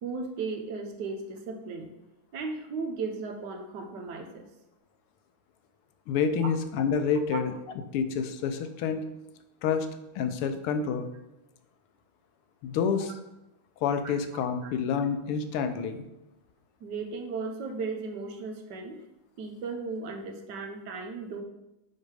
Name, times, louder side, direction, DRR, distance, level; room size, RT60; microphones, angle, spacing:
voice 1, 0.0-1.9 2.3-4.5 7.3-7.4 14.6-14.7 16.8-19.0 19.4-21.4, right 4 dB, 60° right, 4 dB, 1.4 m, -36 dB
voice 2, 6.1-7.5 7.9-9.1 9.6-9.9 10.2-11.1 12.6-13.1 13.8-16.0, left 6 dB, 90° left, 8 dB, 1.6 m, -28 dB
6.5 x 5.1 x 4.9 m, 0.92 s
omnidirectional pair, 2.4 m